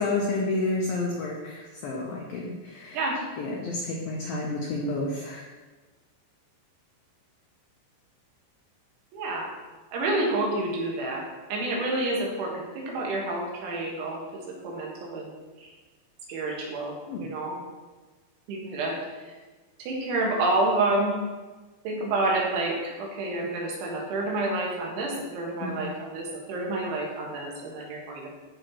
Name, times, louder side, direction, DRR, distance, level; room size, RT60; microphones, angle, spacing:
voice 1, 0.0-3.0 3.4-5.4 17.1-17.4 25.6-25.9, left 2 dB, 90° left, -1 dB, 2.0 m, -30 dB
voice 2, 9.1-9.5 9.9-11.2 11.5-15.3 15.6-15.7 16.3-16.9 17.2-17.5 18.5-19.0 19.8-21.1 21.9-28.3, right 2 dB, 75° right, -2 dB, 4.0 m, -29 dB
14.0 x 6.4 x 3.1 m, 1.3 s
omnidirectional pair, 5.6 m